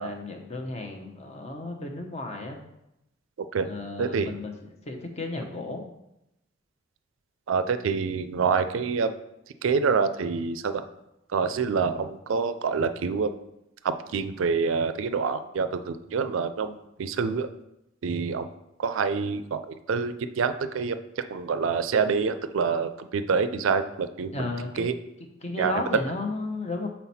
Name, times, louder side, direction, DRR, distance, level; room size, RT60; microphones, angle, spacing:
voice 1, 0.0-2.6 3.6-4.5 4.8-5.8 24.3-24.9 25.4-26.9, left 2 dB, 35° left, 3 dB, 0.7 m, -33 dB
voice 2, 4.0-4.4 7.5-9.2 9.6-10.8 11.3-13.3 13.8-17.5 18.0-18.5 18.8-24.5 24.8-24.9 25.6-25.8, right 5 dB, 80° right, 10 dB, 0.4 m, -27 dB
5.7 x 4.2 x 4.1 m, 0.86 s
head